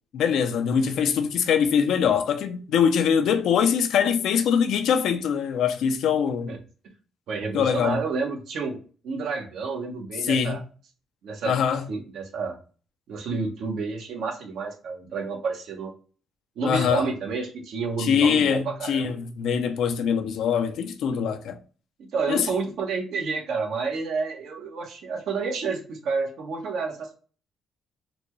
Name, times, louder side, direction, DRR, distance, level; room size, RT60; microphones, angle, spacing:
voice 1, 0.1-6.6 7.5-8.0 10.2-10.6 11.4-11.8 16.6-17.1 18.0-21.6 22.3-22.5, left 7 dB, 75° left, 0.5 m, -23 dB
voice 2, 7.3-8.8 9.0-10.6 11.2-11.5 11.9-12.6 13.1-15.9 16.6-19.1 22.1-27.2, right 4 dB, 75° right, 1.0 m, -30 dB
4.0 x 2.2 x 3.0 m
cardioid pair, 90°, 0 cm